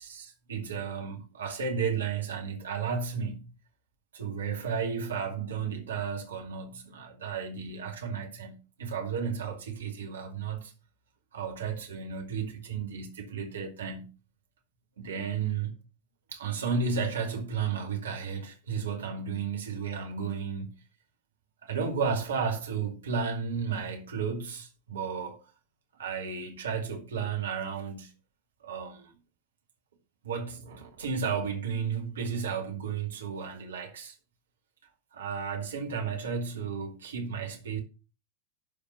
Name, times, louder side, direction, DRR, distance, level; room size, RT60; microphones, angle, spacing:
voice 1, 0.0-3.5 4.1-10.7 11.3-14.1 15.0-15.7 16.3-20.8 21.6-25.4 26.0-28.1 28.6-29.1 30.2-34.2 35.1-37.8, right 6 dB, 65° right, 2.4 m, -33 dB
11.5 x 5.1 x 5.9 m
figure-of-eight pair, 90°, 0 cm